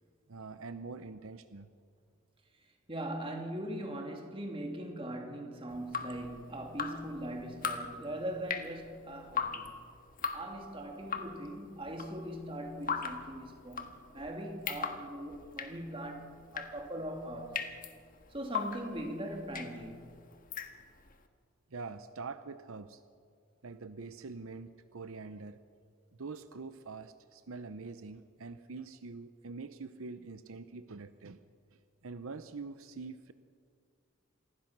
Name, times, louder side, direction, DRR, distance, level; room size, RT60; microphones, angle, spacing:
voice 1, 0.3-1.7 21.7-23.0 23.6-25.6 26.2-31.4 31.7-33.3, right 4 dB, 70° right, 0.7 m, -45 dB
voice 2, 2.9-9.7 10.3-17.6 18.3-20.1, right 1 dB, 25° right, 2.7 m, -40 dB
Drip, 5.7-21.2, left 6 dB, 40° left, 1.6 m, -40 dB
27.0 x 20.0 x 6.1 m
head